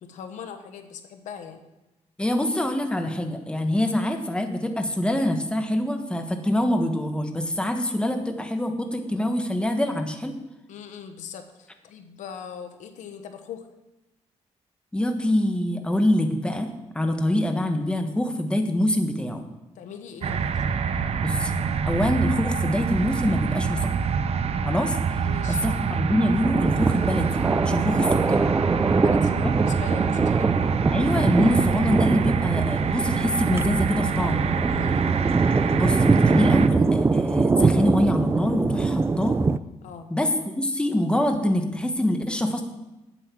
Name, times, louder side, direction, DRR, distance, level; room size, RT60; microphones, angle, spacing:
voice 1, 0.0-1.6 10.7-13.7 19.8-20.6 25.2-25.6 28.9-30.5 34.7-35.0 39.8-40.1, left 7 dB, 90° left, 7 dB, 1.0 m, -40 dB
voice 2, 2.2-10.3 14.9-19.4 21.2-21.5 21.8-23.9 24.6-25.0 25.5-28.4 29.4-29.5 30.9-34.5 35.7-39.4 40.1-42.6, left 1 dB, 10° left, 5 dB, 1.2 m, -25 dB
sound 1, 20.2-36.7, right 6 dB, 55° right, 0.7 m, -26 dB
Thunder, 26.4-39.6, right 4 dB, 20° right, 0.4 m, -23 dB
8.9 x 8.1 x 6.1 m, 0.99 s
cardioid pair, 95°, 12 cm